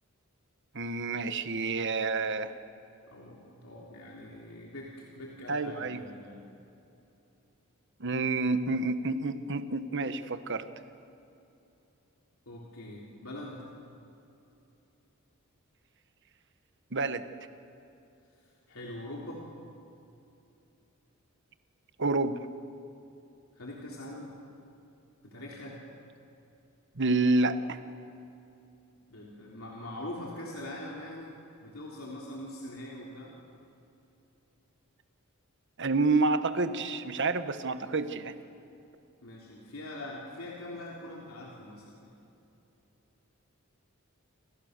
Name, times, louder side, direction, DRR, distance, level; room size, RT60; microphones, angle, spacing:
voice 1, 0.7-2.5 5.5-6.0 8.0-10.7 16.9-17.2 22.0-22.4 27.0-27.8 35.8-38.3, right 3 dB, 60° right, 10 dB, 1.3 m, -28 dB
voice 2, 3.1-6.4 12.5-13.7 18.7-19.4 23.5-24.4 25.2-25.8 29.1-31.3 31.6-33.3 39.2-42.1, left 1 dB, 75° left, -3 dB, 3.6 m, -43 dB
29.5 x 27.5 x 6.8 m, 2.9 s
head